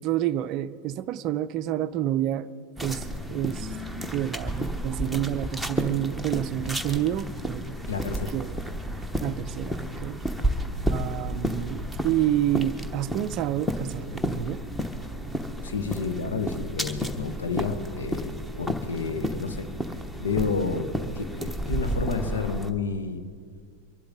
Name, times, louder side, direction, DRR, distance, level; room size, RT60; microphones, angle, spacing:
voice 1, 0.0-2.5 2.8-3.7 4.1-7.8 8.3-8.5 9.2-10.2 10.9-14.6, right 12 dB, 40° right, 15 dB, 0.5 m, -29 dB
sound 1, 2.8-22.7, equal, ahead, 1.0 m, -32 dB
voice 2, 7.9-8.3 15.6-18.3 18.6-19.7 20.2-23.2, left 4 dB, 70° left, 8 dB, 1.3 m, -30 dB
24.0 x 11.5 x 3.8 m, 2.1 s
figure-of-eight pair, 90°, 0 cm